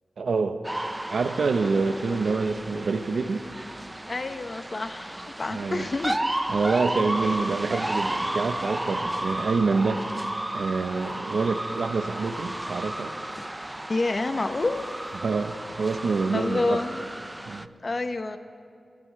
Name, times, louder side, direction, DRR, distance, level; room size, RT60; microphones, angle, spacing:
voice 1, 0.2-0.6 1.1-3.4 5.5-5.9 6.5-10.0 10.5-13.1 15.2-16.8 17.5-17.7, right 4 dB, 85° right, 8 dB, 0.9 m, -26 dB
sound 1, 0.6-17.7, right 1 dB, 15° right, 0.4 m, -33 dB
voice 2, 4.1-6.2 7.2-7.3 13.9-14.9 16.3-17.1 17.8-18.4, left 2 dB, 45° left, 9 dB, 0.7 m, -28 dB
25.5 x 13.5 x 3.3 m, 2.4 s
wide cardioid pair, 80°, 0 cm